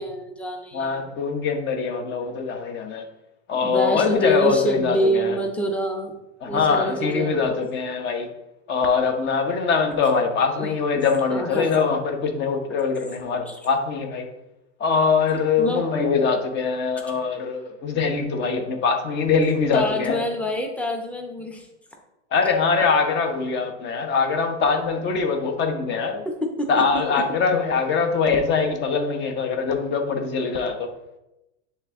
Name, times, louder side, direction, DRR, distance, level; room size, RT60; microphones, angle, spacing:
voice 1, 0.0-1.1 3.6-6.1 6.4-7.4 10.6-10.7 11.3-11.7 13.5-13.6 15.6-15.9 19.7-21.7 26.6-26.7, equal, 5° left, 2 dB, 0.8 m, -26 dB
voice 2, 0.7-3.0 3.5-5.4 6.4-8.3 8.7-14.3 14.8-20.2 22.3-26.2 26.7-30.9, left 5 dB, 30° left, 5 dB, 1.1 m, -23 dB
9.9 x 3.4 x 3.7 m, 0.94 s
supercardioid pair, 130°, 35 cm